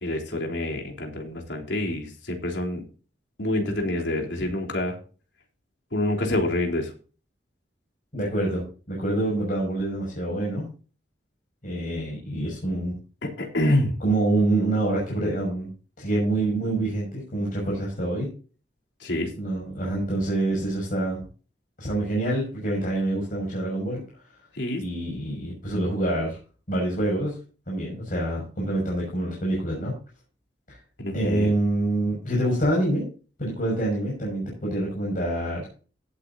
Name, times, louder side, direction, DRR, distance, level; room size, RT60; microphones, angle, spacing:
voice 1, 0.0-2.8 3.4-5.0 5.9-6.9 13.2-14.0 19.0-19.3 24.5-24.8 31.0-31.5, left 1 dB, 80° left, 1 dB, 3.5 m, -27 dB
voice 2, 8.1-10.7 11.6-12.9 14.0-15.7 16.0-18.3 19.4-21.2 21.8-24.0 24.8-26.4 26.7-27.4 27.7-29.9 30.7-30.8 31.1-33.1 33.4-35.7, right 1 dB, 50° left, -3 dB, 6.1 m, -26 dB
17.0 x 8.7 x 2.7 m, 0.37 s
head